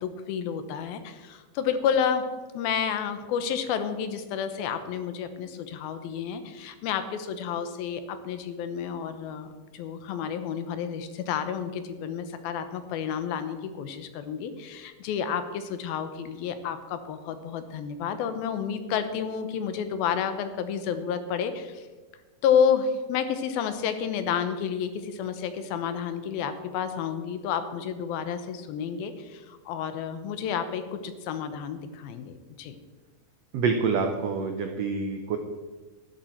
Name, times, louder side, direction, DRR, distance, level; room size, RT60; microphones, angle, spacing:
voice 1, 0.0-2.2 2.5-21.9 22.4-32.8, left 7 dB, 80° left, 10 dB, 2.8 m, -30 dB
voice 2, 33.5-35.4, right 5 dB, 80° right, 5 dB, 1.4 m, -27 dB
13.0 x 11.5 x 4.5 m, 1.3 s
omnidirectional pair, 4.2 m